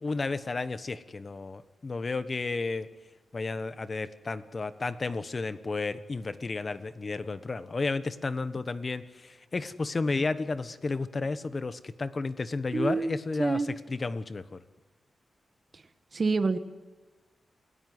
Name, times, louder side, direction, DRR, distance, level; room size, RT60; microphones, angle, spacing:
voice 1, 0.0-2.9 3.3-13.6 13.9-14.6, left 3 dB, 35° left, 12 dB, 1.2 m, -32 dB
voice 2, 12.7-13.1 13.4-13.7 16.1-16.6, right 4 dB, 40° right, 8 dB, 1.5 m, -27 dB
28.5 x 18.5 x 9.5 m, 1.3 s
wide cardioid pair, 110°, 0 cm